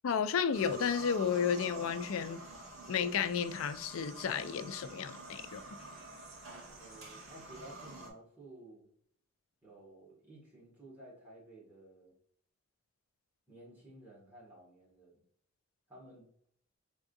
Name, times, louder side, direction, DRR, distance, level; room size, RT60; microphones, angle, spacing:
voice 1, 0.0-2.4 2.9-5.6, left 7 dB, 85° left, 0.4 m, -32 dB
sound 1, 0.5-8.1, right 2 dB, 90° right, 1.3 m, -48 dB
voice 2, 6.8-8.9 9.6-12.1 13.5-15.2 15.9-16.3, right 1 dB, 10° right, 1.8 m, -54 dB
4.8 x 3.5 x 2.6 m
head